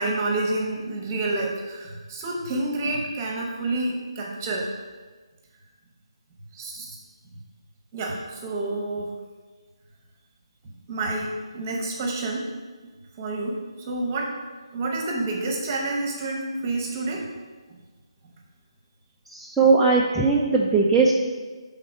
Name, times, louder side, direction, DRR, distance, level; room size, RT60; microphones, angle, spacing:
voice 1, 0.0-4.7 6.5-7.0 7.9-9.1 10.9-12.4 13.2-14.3 14.7-17.3, right 2 dB, 25° right, -1 dB, 1.0 m, -28 dB
voice 2, 19.3-21.1, right 4 dB, 5° right, -6 dB, 0.3 m, -19 dB
6.1 x 3.8 x 4.7 m, 1.4 s
figure-of-eight pair, 150°, 3 cm